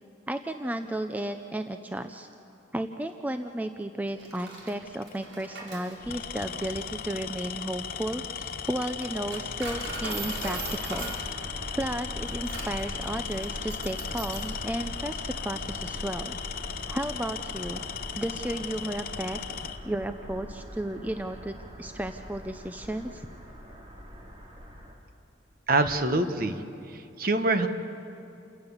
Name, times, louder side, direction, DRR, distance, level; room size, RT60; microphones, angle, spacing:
voice 1, 0.3-2.3 2.7-11.1 11.7-16.4 16.9-17.8 18.2-19.4 19.8-23.3, right 1 dB, 10° right, 8 dB, 0.5 m, -33 dB
Coin (dropping), 4.1-14.6, right 2 dB, 75° right, 4.5 m, -41 dB
Tools, 4.8-5.1 6.0-19.8, left 6 dB, 50° left, 0.8 m, -37 dB
sound 1, 9.7-24.9, equal, 30° right, 2.6 m, -43 dB
voice 2, 25.7-26.6 26.9-27.7, right 2 dB, 50° right, 8 dB, 1.2 m, -25 dB
28.5 x 16.5 x 7.2 m, 2.7 s
head